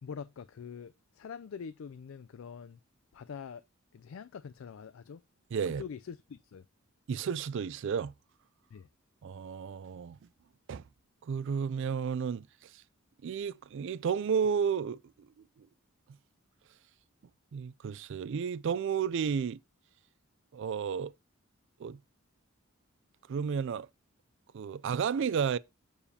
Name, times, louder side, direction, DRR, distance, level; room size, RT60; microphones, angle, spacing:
voice 1, 0.0-2.8 3.1-3.6 3.9-5.2 5.8-6.7 8.7-8.9, left 6 dB, 70° left, 0.4 m, -44 dB
voice 2, 5.5-5.8 7.1-8.1 9.2-10.2 10.7-10.8 11.2-12.7 13.2-15.0 17.5-19.6 20.5-21.1 21.8-22.0 23.3-23.9 24.5-25.6, right 6 dB, 60° right, 0.3 m, -32 dB
7.0 x 7.0 x 2.8 m
head